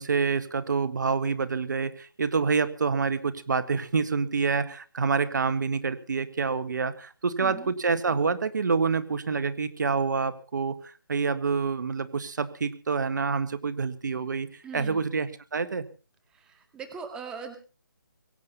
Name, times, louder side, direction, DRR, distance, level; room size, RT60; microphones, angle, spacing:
voice 1, 0.0-15.9, right 5 dB, 60° right, 12 dB, 1.7 m, -27 dB
voice 2, 7.4-7.7 14.6-15.0 16.3-17.6, right 6 dB, 5° right, 7 dB, 2.0 m, -40 dB
22.5 x 10.0 x 5.6 m, 0.38 s
figure-of-eight pair, 160°, 11 cm